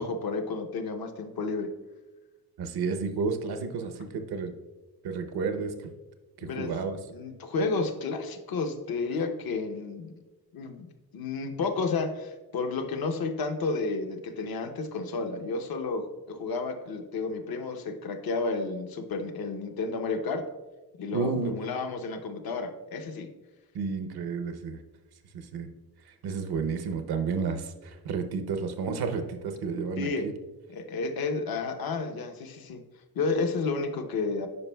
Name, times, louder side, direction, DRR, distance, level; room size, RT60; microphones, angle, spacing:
voice 1, 0.0-1.7 6.4-6.8 7.1-10.1 10.5-10.9 11.1-20.5 21.0-23.3 30.0-30.3 30.7-32.8 33.1-34.5, left 3 dB, 70° left, 6 dB, 0.8 m, -31 dB
voice 2, 2.6-4.5 5.0-5.7 6.4-7.0 21.1-21.6 23.7-24.8 25.3-25.7 26.2-30.3, right 5 dB, 80° right, 8 dB, 0.8 m, -31 dB
9.5 x 5.3 x 2.2 m, 1.1 s
cardioid pair, 70°, 38 cm